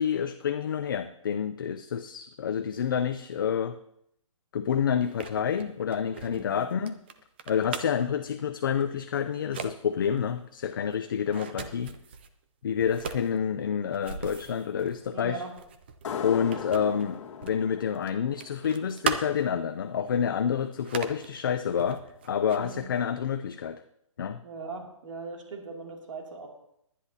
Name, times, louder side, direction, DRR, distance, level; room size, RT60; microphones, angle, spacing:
voice 1, 0.0-3.8 4.5-7.0 7.5-11.9 12.6-15.4 16.2-23.8 24.2-24.4, left 7 dB, 40° left, 9 dB, 0.5 m, -28 dB
sound 1, 5.0-8.1 8.8-9.0 9.3-9.7 10.1-12.3 12.8-17.7 17.9-19.6 20.1-20.2 20.7-21.3 21.8-22.9, right 7 dB, 20° right, 0.5 m, -38 dB
voice 2, 6.3-6.6 11.4-11.7 15.1-15.5 22.5-22.8 24.4-26.5, right 4 dB, 65° right, 0 dB, 2.6 m, -40 dB
sound 2, 16.0-19.4, left 6 dB, 60° left, 1.7 m, -38 dB
21.0 x 10.0 x 2.8 m, 0.74 s
hypercardioid pair, 170°, 17 cm